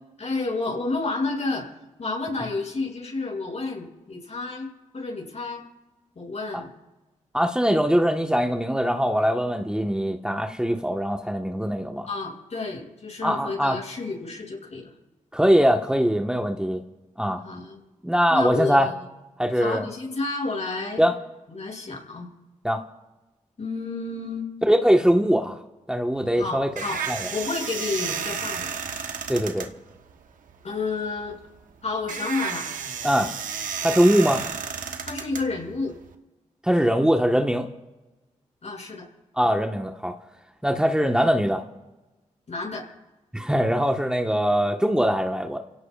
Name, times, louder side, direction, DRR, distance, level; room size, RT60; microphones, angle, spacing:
voice 1, 0.2-1.7 2.0-4.7 4.9-5.7 6.2-6.7 12.1-14.9 17.4-17.8 18.3-18.9 19.6-21.1 21.5-22.3 23.6-24.6 26.3-27.0 27.3-28.7 30.6-31.4 31.8-32.7 35.0-36.0 38.6-39.1 42.5-42.9, left 3 dB, 55° left, -1 dB, 7.0 m, -30 dB
voice 2, 7.3-12.1 13.2-13.8 15.3-16.8 17.2-17.4 18.0-18.9 19.4-19.9 21.0-21.1 22.6-22.8 24.7-25.6 25.9-26.7 27.1-27.3 29.3-29.7 33.0-33.3 33.8-34.4 36.6-37.7 39.3-40.2 40.6-41.6 43.3-45.6, equal, 5° right, 3 dB, 1.4 m, -22 dB
slow door hinges nm, 26.2-36.1, right 7 dB, 90° right, 1.2 m, -33 dB
29.5 x 17.0 x 2.5 m, 1.1 s
cardioid pair, 55°, 13 cm